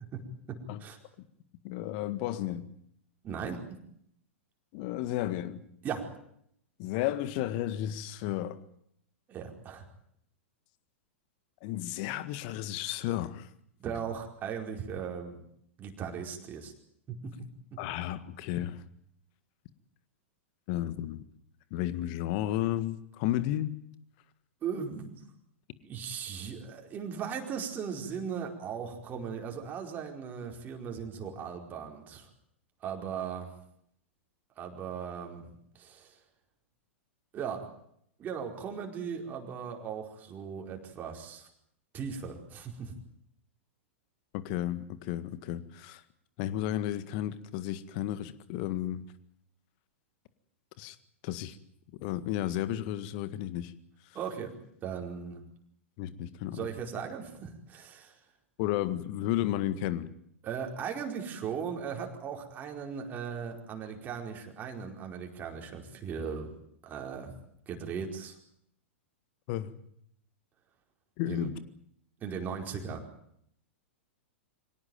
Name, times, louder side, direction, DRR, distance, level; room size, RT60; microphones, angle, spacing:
voice 1, 0.5-1.0 3.2-3.8 5.8-6.1 9.3-9.8 13.8-15.4 15.8-16.7 17.1-17.3 17.7-17.8 24.6-25.2 25.8-32.3 32.8-33.5 34.6-36.1 37.3-37.7 38.2-41.5 41.9-42.9 54.1-54.5 54.8-55.4 56.5-58.1 60.4-66.5 66.8-67.3 67.7-68.4 71.3-71.5 72.2-73.0, right 7 dB, 25° right, 2 dB, 4.8 m, -38 dB
voice 2, 1.6-2.7 4.7-5.6 6.8-8.6 11.6-13.5 17.8-18.8 20.7-21.2 21.7-23.8 44.3-46.0 46.4-49.0 50.8-50.9 51.2-51.6 52.0-53.7 56.0-56.7 58.6-60.1 69.5-69.8 71.2-71.6, left 13 dB, 45° left, 14 dB, 1.8 m, -33 dB
25.0 x 18.0 x 9.3 m, 0.72 s
figure-of-eight pair, 100°, 7 cm